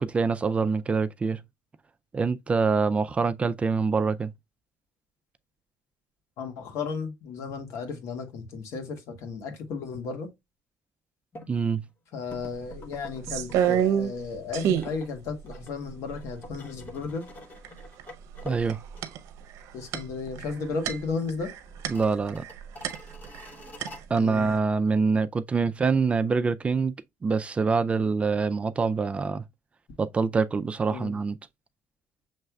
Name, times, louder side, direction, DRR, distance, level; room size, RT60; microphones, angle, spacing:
voice 1, 0.0-1.4 2.1-4.3 11.5-11.8 18.4-18.8 21.9-22.4 24.1-26.9 27.2-29.4 30.0-31.4, right 4 dB, 25° right, 0.4 m, -25 dB
voice 2, 6.4-10.3 12.1-17.2 19.7-21.5 24.1-24.5 30.9-31.2, left 4 dB, 75° left, 1.7 m, -34 dB
sound 1, 11.3-11.5 12.3-13.9 14.2-19.5 19.8-19.9 20.3-20.9 21.1-21.2 21.8-24.0, left 1 dB, 35° left, 1.0 m, -46 dB
sound 2, 12.3-12.4 12.7-14.3 14.5-15.0 15.5-15.6 15.9-16.6 17.6-18.0 18.3-23.5 23.8-24.6, right 9 dB, 85° right, 0.7 m, -28 dB
6.5 x 3.2 x 2.3 m
cardioid pair, 125°, 5 cm